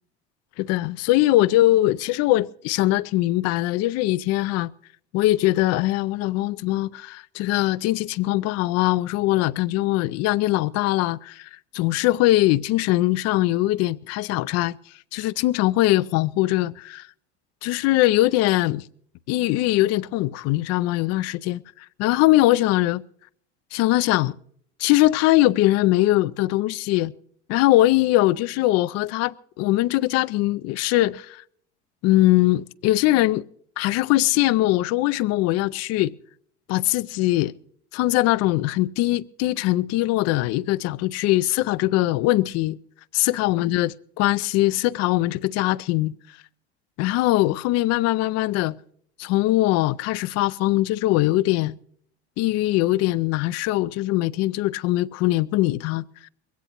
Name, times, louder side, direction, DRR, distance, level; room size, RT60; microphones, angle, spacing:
voice 1, 0.6-4.7 5.1-14.8 15.1-17.1 17.6-18.8 19.3-21.6 22.0-23.0 23.7-24.4 24.8-27.1 27.5-31.4 32.0-33.4 33.8-36.1 36.7-37.5 37.9-42.8 43.1-46.1 47.0-48.7 49.2-51.7 52.4-56.0, left 17 dB, 50° left, 0.5 m, -21 dB
22.0 x 17.0 x 3.0 m
hypercardioid pair, 75°, 34 cm